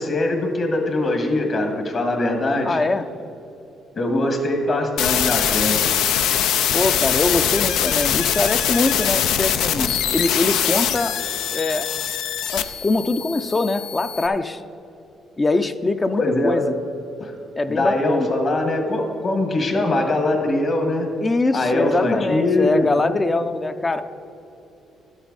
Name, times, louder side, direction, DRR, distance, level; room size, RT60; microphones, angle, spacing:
voice 1, 0.0-2.8 4.0-5.8 16.2-16.6 17.2-17.3 17.7-21.1 21.5-22.9, left 2 dB, 50° left, 3 dB, 1.8 m, -22 dB
voice 2, 2.6-3.1 6.7-11.2 11.5-11.9 12.5-14.6 15.4-16.7 17.6-18.3 21.2-24.0, left 2 dB, 25° left, 9 dB, 0.5 m, -23 dB
sound 1, 5.0-14.3, left 9 dB, 90° left, 0.5 m, -22 dB
12.5 x 8.1 x 4.1 m, 2.9 s
cardioid pair, 90°, 0 cm